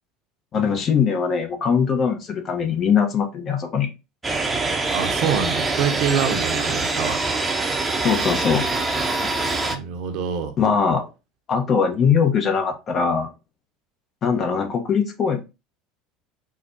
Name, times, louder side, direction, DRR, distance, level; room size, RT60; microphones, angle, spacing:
voice 1, 0.5-3.9 6.7-6.8 8.0-8.7 10.6-11.1 11.5-13.3 14.2-15.4, left 6 dB, 40° left, 0.9 m, -21 dB
sound 1, 4.2-9.8, right 3 dB, 20° right, 0.7 m, -24 dB
voice 2, 4.9-7.2 9.7-10.5, right 7 dB, 65° right, 0.8 m, -25 dB
4.6 x 2.2 x 2.6 m
hypercardioid pair, 85°, 0 cm